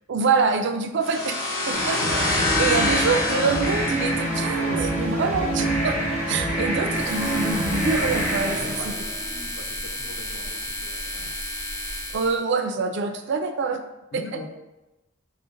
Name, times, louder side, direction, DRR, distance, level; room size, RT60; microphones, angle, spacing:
voice 1, 0.1-1.3 1.7-6.0 6.3-8.9 12.1-13.8 14.1-14.2, right 4 dB, 60° right, 7 dB, 0.4 m, -25 dB
sound 1, 1.0-4.7, left 2 dB, 90° left, 1.1 m, -26 dB
sound 2, 1.7-9.4, right 1 dB, 45° left, 1.2 m, -26 dB
sound 3, 6.9-12.4, left 1 dB, 15° left, 0.5 m, -33 dB
voice 2, 8.6-11.4 14.1-14.5, left 3 dB, 65° left, 1 dB, 0.7 m, -42 dB
4.9 x 2.1 x 3.7 m, 0.99 s
head